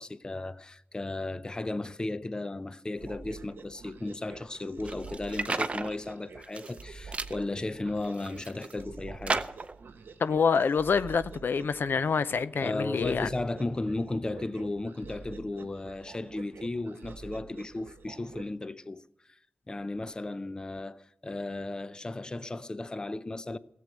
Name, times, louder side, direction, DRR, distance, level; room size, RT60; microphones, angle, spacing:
voice 1, 0.0-9.5 12.6-19.4 19.7-23.6, left 2 dB, 20° left, 0.5 m, -35 dB
sound 1, 2.9-18.5, right 5 dB, 85° right, 0.9 m, -48 dB
sound 2, 4.9-5.9 6.4-6.8 7.1-7.4 8.0-8.7 9.3-9.7, right 3 dB, 35° right, 0.6 m, -33 dB
voice 2, 10.2-13.3, left 5 dB, 70° left, 0.5 m, -26 dB
16.0 x 7.7 x 9.0 m
wide cardioid pair, 100°, 4 cm